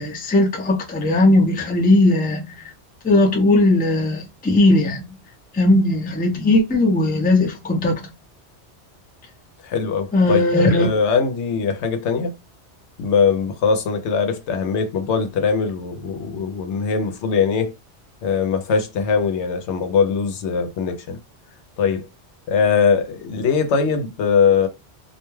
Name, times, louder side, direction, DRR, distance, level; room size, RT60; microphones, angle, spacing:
voice 1, 0.0-2.7 3.0-5.0 5.5-8.1 10.1-10.9, left 2 dB, 15° left, 0.3 m, -18 dB
voice 2, 9.6-10.4 10.8-12.3 13.0-17.7 18.2-21.2 21.8-22.1 22.5-24.7, left 6 dB, 75° left, 0.9 m, -21 dB
2.4 x 2.2 x 3.0 m
omnidirectional pair, 1.2 m